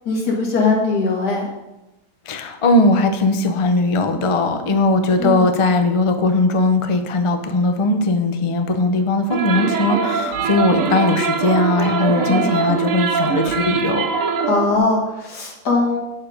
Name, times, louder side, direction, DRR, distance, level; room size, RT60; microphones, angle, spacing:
voice 1, 0.1-1.5 5.2-5.5 12.2-12.5 14.5-16.0, left 3 dB, 85° left, -1 dB, 2.4 m, -20 dB
voice 2, 2.3-14.1, left 2 dB, 45° left, 6 dB, 0.4 m, -19 dB
sound 1, 9.3-14.8, right 5 dB, 65° right, 1.0 m, -22 dB
7.6 x 6.6 x 4.9 m, 0.99 s
omnidirectional pair, 1.7 m